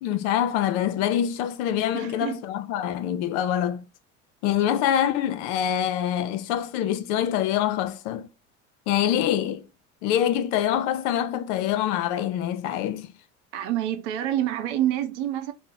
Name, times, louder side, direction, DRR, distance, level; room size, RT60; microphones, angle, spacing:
voice 1, 0.0-3.8 4.4-8.3 8.9-9.6 10.0-13.1, left 10 dB, 65° left, 0.6 m, -25 dB
voice 2, 1.9-2.4 13.5-15.5, right 12 dB, 70° right, 0.6 m, -27 dB
3.0 x 2.1 x 3.7 m
hypercardioid pair, 80°, 35 cm